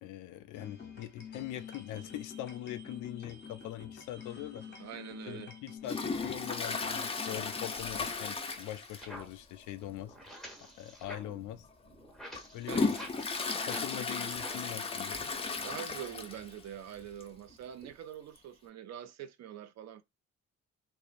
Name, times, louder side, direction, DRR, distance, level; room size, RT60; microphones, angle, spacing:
voice 1, 0.0-4.7 5.3-10.1 10.8-11.7 12.5-13.1 13.7-15.2, left 13 dB, 80° left, 0.5 m, -42 dB
sound 1, 0.5-7.8, left 6 dB, 35° left, 0.8 m, -47 dB
voice 2, 4.8-5.5 12.7-13.0 15.6-20.0, right 10 dB, 60° right, 0.5 m, -44 dB
Toilet flush, 5.8-9.3 9.6-9.7 10.1-10.2 11.0-11.2 11.7-16.6 16.9-17.0 17.2-17.3 18.4-18.5, left 4 dB, 20° left, 0.4 m, -35 dB
sound 2, 8.5-14.8 15.0-17.9, equal, ahead, 0.8 m, -51 dB
2.9 x 2.0 x 2.4 m
cardioid pair, 90°, 30 cm